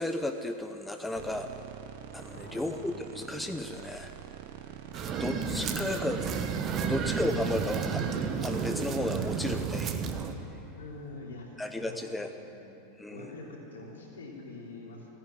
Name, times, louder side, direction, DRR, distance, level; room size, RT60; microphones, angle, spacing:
voice 1, 0.0-1.5 2.1-4.1 5.2-6.2 6.8-8.1 8.4-10.1 11.6-12.3 13.0-13.3, left 1 dB, 5° left, 6 dB, 0.7 m, -34 dB
sound 1, 1.1-10.3, right 9 dB, 50° right, 1.1 m, -46 dB
voice 2, 2.3-2.9 4.9-5.7 10.7-11.5 11.8-12.6 13.1-15.1, left 2 dB, 70° left, -3 dB, 3.5 m, -46 dB
sound 2, 4.9-10.3, right 6 dB, 35° right, 1.1 m, -32 dB
14.5 x 9.1 x 10.0 m, 3.0 s
figure-of-eight pair, 90°, 0 cm